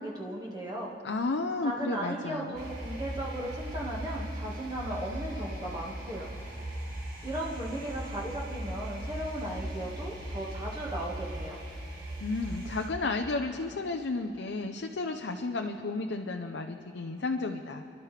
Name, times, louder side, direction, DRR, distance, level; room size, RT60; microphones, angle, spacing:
voice 1, 0.0-0.9 1.6-6.3 7.2-11.6, right 1 dB, 20° right, -4 dB, 1.6 m, -36 dB
voice 2, 1.0-2.5 12.2-17.8, left 3 dB, 85° left, 4 dB, 0.6 m, -32 dB
sound 1, 2.5-12.9, right 1 dB, 80° right, 4.4 m, -39 dB
28.5 x 12.0 x 3.3 m, 2.5 s
head